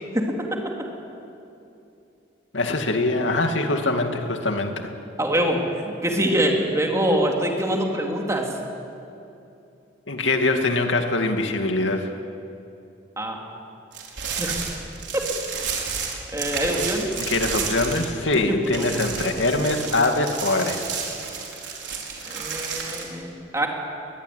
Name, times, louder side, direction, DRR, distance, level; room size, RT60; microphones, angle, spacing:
voice 1, 0.1-0.7 5.2-8.5 13.2-13.4 14.4-14.6 16.3-17.1 18.5-18.9 22.3-23.7, right 1 dB, 15° right, 0 dB, 3.3 m, -24 dB
voice 2, 2.5-4.7 10.1-12.1 17.2-21.0 22.2-22.3, left 2 dB, 90° left, 5 dB, 2.3 m, -23 dB
sound 1, 13.9-18.4 18.6-23.0, right 6 dB, 70° right, 4.9 m, -31 dB
22.0 x 21.5 x 9.7 m, 2.7 s
head